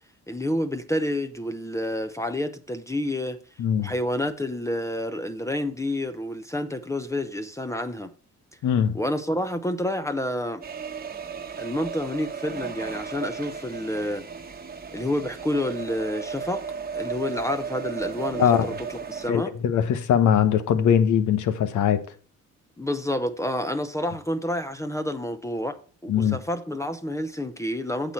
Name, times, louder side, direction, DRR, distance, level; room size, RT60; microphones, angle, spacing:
voice 1, 0.3-3.4 3.8-8.1 8.9-10.6 11.6-14.2 14.9-16.6 16.9-19.5 22.8-25.8 26.0-28.1, left 1 dB, 10° left, 0.8 m, -29 dB
voice 2, 3.6-3.9 8.6-9.0 18.4-18.7 19.3-22.0 26.1-26.4, left 8 dB, 75° left, 1.2 m, -21 dB
sound 1, 10.6-19.3, right 6 dB, 30° right, 1.2 m, -35 dB
8.7 x 7.2 x 4.5 m
cardioid pair, 90°, 30 cm